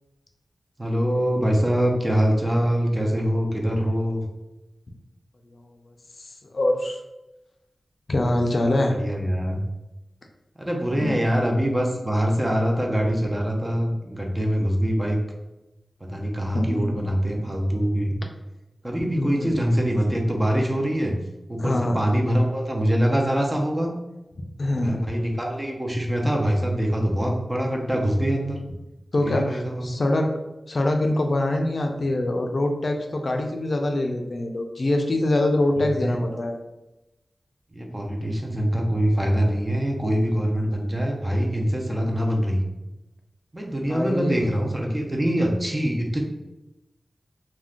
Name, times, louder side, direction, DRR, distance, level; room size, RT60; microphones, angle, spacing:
voice 1, 0.8-4.2 8.9-9.6 10.6-15.2 16.0-18.1 18.8-21.2 21.5-23.9 24.7-28.6 29.2-29.9 36.0-36.2 37.7-42.6 43.5-46.2, equal, 20° right, 0 dB, 0.5 m, -24 dB
voice 2, 5.4-7.0 8.1-9.0 10.9-11.2 16.5-16.9 19.0-19.6 21.6-22.0 24.6-25.0 29.1-30.3 30.7-36.6 43.8-44.5, left 1 dB, 55° left, 3 dB, 0.3 m, -24 dB
2.4 x 2.2 x 3.6 m, 0.99 s
wide cardioid pair, 85°, 0 cm